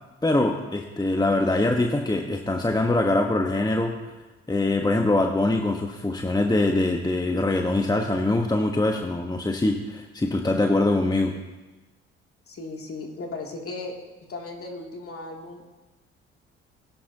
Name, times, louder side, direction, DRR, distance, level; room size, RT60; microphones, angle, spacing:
voice 1, 0.2-3.9 4.5-11.3, left 2 dB, 10° left, 3 dB, 1.1 m, -23 dB
voice 2, 12.5-13.9 14.3-15.6, left 3 dB, 40° left, 0 dB, 2.7 m, -36 dB
19.0 x 10.0 x 2.8 m, 1.1 s
hypercardioid pair, 55°, 33 cm